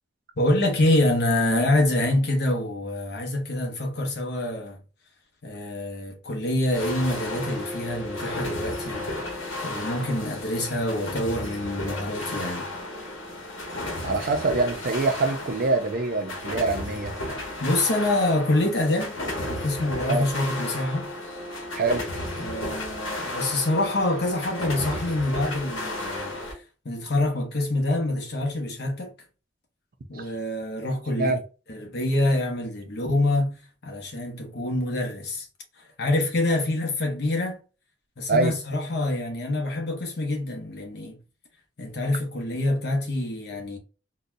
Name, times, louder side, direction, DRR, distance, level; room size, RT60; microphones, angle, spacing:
voice 1, 0.4-4.8 5.4-9.0 9.6-12.7 17.6-21.1 22.4-29.1 30.1-31.3 31.7-35.5 36.0-37.6 38.2-41.2 41.8-43.8, left 1 dB, 60° left, 1.0 m, -26 dB
sound 1, 6.7-26.5, left 1 dB, 85° left, 1.2 m, -33 dB
voice 2, 14.0-17.1 20.1-20.3 21.7-22.0 30.1-30.3 31.2-31.4 38.3-38.5, right 3 dB, 50° right, 0.5 m, -24 dB
4.0 x 2.3 x 2.6 m
head